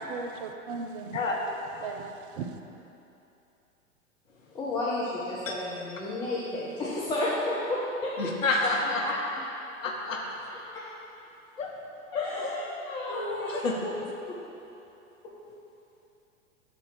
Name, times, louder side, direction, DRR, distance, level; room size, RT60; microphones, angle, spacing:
voice 1, 0.0-1.2 1.7-2.6, right 5 dB, 40° right, 6 dB, 0.5 m, -37 dB
voice 2, 4.5-8.1 8.8-9.4 10.7-10.8 12.1-13.9 14.3-14.4, left 2 dB, 10° left, -8 dB, 0.6 m, -32 dB
voice 3, 8.2-9.1 9.8-10.2 11.6-11.7 12.1-12.2 13.1-13.7, left 3 dB, 70° left, 0 dB, 0.8 m, -28 dB
6.0 x 4.1 x 5.7 m, 2.8 s
figure-of-eight pair, 100°, 40 cm